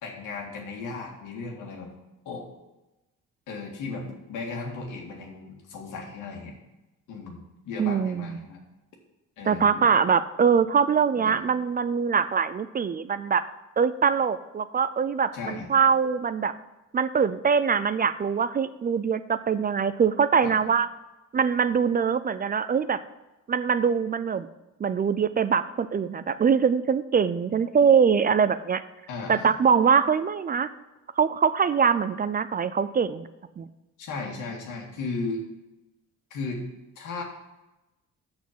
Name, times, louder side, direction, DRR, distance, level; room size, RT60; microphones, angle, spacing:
voice 1, 0.0-1.9 2.3-2.5 3.5-6.5 7.1-8.6 9.4-10.0 11.2-11.4 15.3-15.7 20.4-20.6 29.1-29.5 34.0-35.4 36.3-36.6 37.0-37.2, left 3 dB, 85° left, 1 dB, 2.0 m, -35 dB
voice 2, 7.8-8.4 9.5-13.4 13.8-16.5 16.9-20.9 21.3-23.0 23.5-24.5 24.8-28.8 29.3-30.7 31.2-33.3 33.6-33.7, right 6 dB, 30° right, 13 dB, 0.4 m, -23 dB
6.2 x 6.1 x 7.2 m, 1.0 s
cardioid pair, 90°, 30 cm